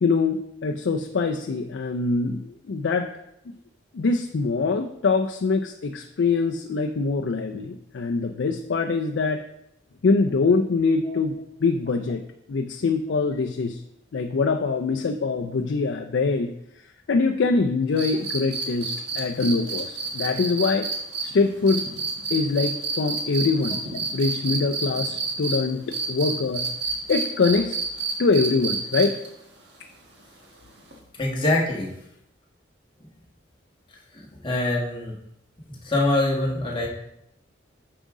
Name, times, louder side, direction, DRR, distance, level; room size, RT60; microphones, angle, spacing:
voice 1, 0.0-3.1 3.9-9.4 10.0-11.3 11.6-12.2 12.5-13.8 14.1-16.5 17.1-20.9 21.2-21.8 22.3-26.7 27.1-27.8 28.2-29.2, left 4 dB, 65° left, 4 dB, 0.4 m, -24 dB
sound 1, 18.0-25.6 25.9-29.3 30.9-31.0, right 4 dB, 55° right, 1.3 m, -29 dB
voice 2, 31.2-31.9 34.1-35.1 35.7-36.9, left 2 dB, 25° left, -3 dB, 1.4 m, -24 dB
9.2 x 4.9 x 3.6 m, 0.80 s
head